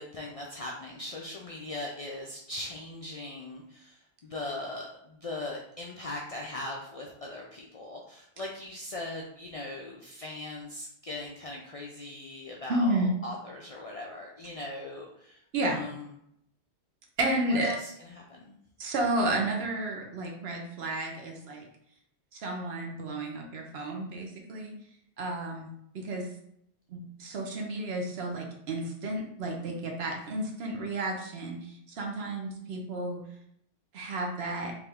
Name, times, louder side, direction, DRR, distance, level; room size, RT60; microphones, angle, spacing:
voice 1, 0.0-16.1 17.5-18.6 25.5-25.6 30.1-30.4 32.4-32.8, left 2 dB, 50° left, -2 dB, 0.4 m, -40 dB
voice 2, 12.7-13.1 15.5-15.8 17.2-17.8 18.8-21.7 22.3-24.7 25.2-25.7 25.9-26.3 26.9-33.2 33.9-34.7, right 1 dB, 70° right, 1 dB, 1.0 m, -32 dB
3.5 x 2.7 x 3.4 m, 0.73 s
omnidirectional pair, 1.1 m